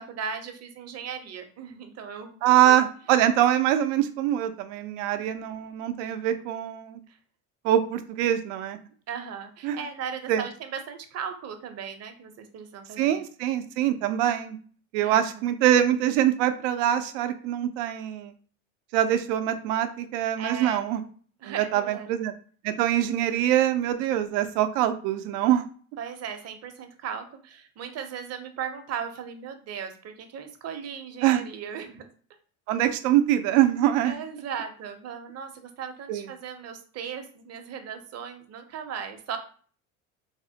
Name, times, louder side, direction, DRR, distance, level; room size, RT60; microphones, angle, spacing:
voice 1, 0.0-2.9 5.1-5.5 7.1-7.2 9.1-13.2 15.0-15.4 20.4-21.1 21.4-22.1 26.0-32.1 34.0-39.4, right 7 dB, 40° right, 7 dB, 0.7 m, -37 dB
voice 2, 2.4-7.0 7.6-8.8 9.6-9.8 10.3-10.4 13.0-14.6 14.9-18.3 18.9-21.0 21.5-22.3 22.6-25.6 31.2-31.4 32.7-34.2 36.1-36.3, right 11 dB, 80° right, 9 dB, 0.6 m, -24 dB
4.1 x 2.0 x 2.7 m, 0.43 s
supercardioid pair, 90°, 37 cm